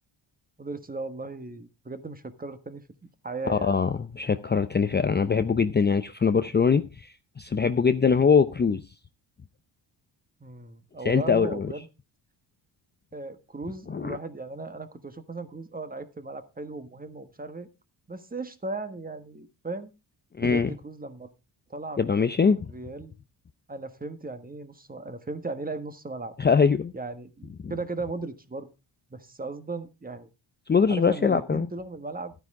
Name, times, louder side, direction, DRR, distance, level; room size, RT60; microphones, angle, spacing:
voice 1, 0.6-2.8 3.2-3.8 10.4-11.9 13.1-17.7 18.1-19.9 20.4-21.3 21.7-22.1 22.7-23.1 23.7-26.3 26.9-28.7 29.1-30.3 30.9-32.3, right 3 dB, 20° right, 1.4 m, -36 dB
voice 2, 3.5-8.8 11.0-11.7 13.9-14.2 20.4-20.7 22.0-22.7 26.4-26.9 30.7-31.7, left 5 dB, 20° left, 0.6 m, -23 dB
12.0 x 9.6 x 3.6 m
cardioid pair, 85°, 47 cm